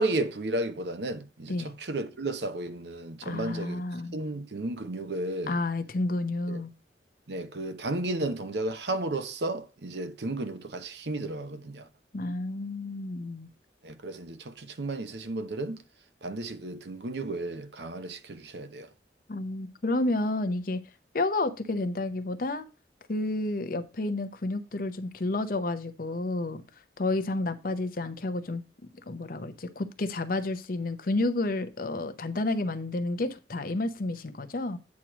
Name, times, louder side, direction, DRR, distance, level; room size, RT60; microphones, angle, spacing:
voice 1, 0.0-3.8 4.1-5.6 6.5-6.6 7.3-11.9 13.8-15.8 16.2-18.9, right 2 dB, 75° right, 0.8 m, -33 dB
voice 2, 3.2-4.2 5.5-6.7 12.1-13.5 19.3-20.8 21.1-22.6 23.1-26.6 27.0-28.6 29.1-34.8, left 2 dB, 55° left, 0.7 m, -30 dB
8.4 x 3.1 x 6.0 m
head